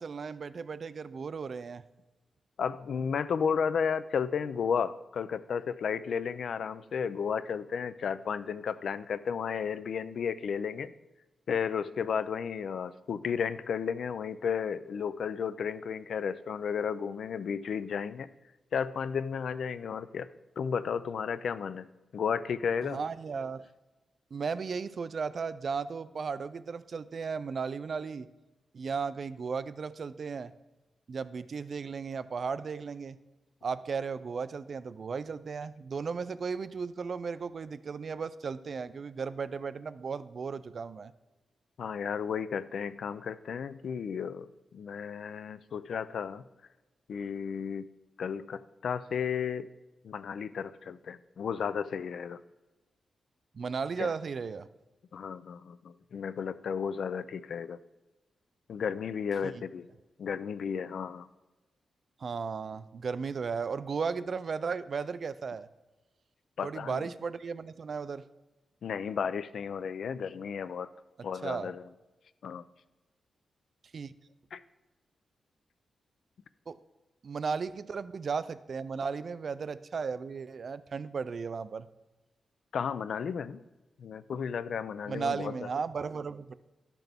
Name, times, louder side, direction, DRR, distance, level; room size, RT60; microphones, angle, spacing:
voice 1, 0.0-1.8 22.8-23.7 24.3-28.3 28.7-30.5 31.1-33.2 33.6-41.1 53.5-54.7 59.4-59.6 62.2-65.7 66.6-68.2 71.4-71.7 73.9-74.1 76.7-76.8 77.2-81.9 85.1-86.5, right 5 dB, 50° right, 14 dB, 0.3 m, -35 dB
voice 2, 2.6-10.9 11.5-18.3 18.7-20.3 20.6-21.9 22.1-23.0 41.8-46.4 47.1-47.9 48.2-49.7 50.0-52.4 54.0-54.1 55.1-57.8 58.7-59.9 60.2-61.3 66.6-67.1 68.8-70.9 71.2-71.8 72.4-72.6 74.5-74.6 82.7-83.6 84.0-85.5, left 7 dB, 70° left, 15 dB, 0.3 m, -33 dB
12.0 x 5.8 x 3.5 m, 1.1 s
wide cardioid pair, 145°, 0 cm